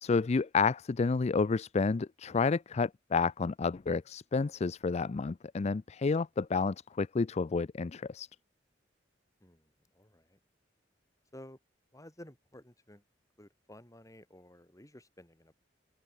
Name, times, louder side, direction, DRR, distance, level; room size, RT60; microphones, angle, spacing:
voice 1, 0.0-8.3, left 4 dB, 35° left, 0.4 m, -30 dB
voice 2, 9.4-10.4 11.3-11.6 11.9-13.0 13.4-15.5, left 1 dB, 20° left, 5.0 m, -53 dB
open air
head